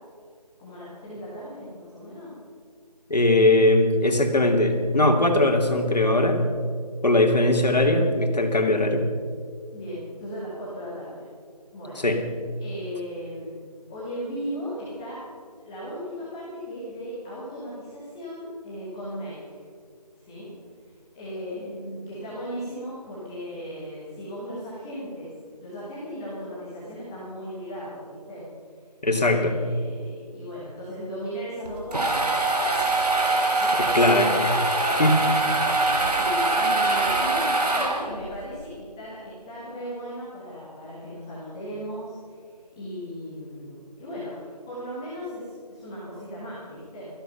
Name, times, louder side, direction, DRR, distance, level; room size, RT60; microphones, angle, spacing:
voice 1, 0.6-2.3 9.7-11.3 11.7-12.1 12.6-13.6 13.9-15.2 15.6-19.6 20.2-20.5 21.1-25.3 25.6-28.4 29.1-32.3 33.2-42.4 42.7-47.1, equal, 5° left, -10 dB, 1.3 m, -37 dB
voice 2, 3.1-6.4 7.0-9.0 12.0-12.2 29.0-29.5 33.9-34.3 35.0-35.2, left 1 dB, 80° left, 3 dB, 2.6 m, -20 dB
sound 1, 31.7-38.3, right 2 dB, 70° right, 2.8 m, -23 dB
16.0 x 14.0 x 5.8 m, 2.1 s
figure-of-eight pair, 170°, 21 cm